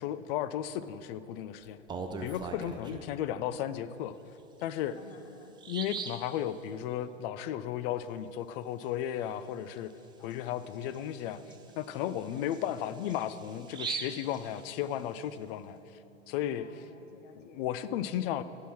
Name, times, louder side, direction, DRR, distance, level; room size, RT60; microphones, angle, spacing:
voice 1, 0.0-1.8 2.2-4.1 4.6-5.0 5.7-9.9 10.2-11.4 11.8-15.8 16.3-16.7 17.4-18.4, left 11 dB, 50° left, 14 dB, 0.5 m, -34 dB
Bird vocalization bird call bird song, 1.7-3.1 4.6-4.7 5.1-5.2 5.6-6.3 9.8-9.9 10.3-10.4 10.9-15.2, right 5 dB, 15° right, 0.4 m, -41 dB
voice 2, 2.7-3.3 4.9-5.6 10.2-10.8 12.3-12.8 16.6-17.7, left 6 dB, 75° left, 7 dB, 1.1 m, -56 dB
sound 1, 11.2-16.6, right 7 dB, 15° left, 2.4 m, -62 dB
10.0 x 5.7 x 6.0 m, 2.9 s
hypercardioid pair, 110°, 37 cm